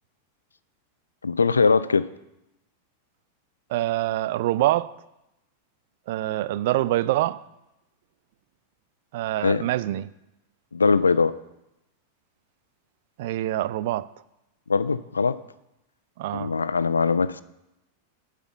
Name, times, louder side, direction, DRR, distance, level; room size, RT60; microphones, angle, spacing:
voice 1, 1.2-2.1 9.4-9.7 10.7-11.3 14.7-15.4 16.3-17.4, left 4 dB, 75° left, 0.4 m, -21 dB
voice 2, 3.7-4.9 6.1-7.4 9.1-10.1 13.2-14.1 16.2-16.5, right 15 dB, 50° right, 0.3 m, -25 dB
8.7 x 5.0 x 7.8 m
figure-of-eight pair, 90°, 0 cm